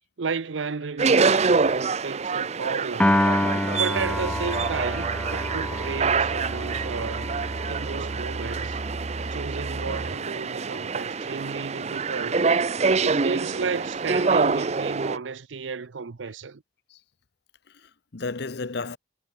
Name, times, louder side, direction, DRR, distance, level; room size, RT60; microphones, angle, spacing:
voice 1, 0.2-3.2 3.8-7.3 7.7-8.8 9.3-12.4 13.0-16.6, right 5 dB, 85° right, 0.7 m, -33 dB
sound 1, 1.0-15.2, right 4 dB, 35° right, 0.6 m, -26 dB
Piano, 3.0-9.4, left 1 dB, 5° left, 0.5 m, -28 dB
voice 2, 3.3-3.7 16.9-17.0 17.7-19.0, left 3 dB, 60° left, 0.8 m, -34 dB
Musical instrument, 3.9-10.3, right 2 dB, 60° right, 1.0 m, -35 dB
head